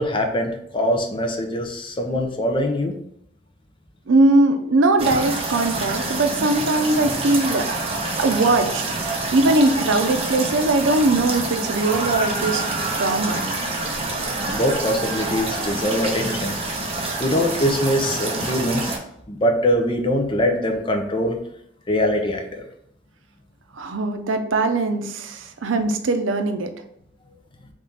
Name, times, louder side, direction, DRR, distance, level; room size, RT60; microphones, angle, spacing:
voice 1, 0.0-3.0 14.5-16.6 17.2-18.9 19.3-21.4 21.9-22.7, equal, 25° left, 3 dB, 0.6 m, -22 dB
voice 2, 4.1-7.9 8.1-12.6 12.9-13.5 23.7-26.7, right 2 dB, 85° right, 7 dB, 0.5 m, -20 dB
sound 1, 5.0-19.0, right 2 dB, 30° right, 0.7 m, -27 dB
3.6 x 3.3 x 4.0 m, 0.74 s
head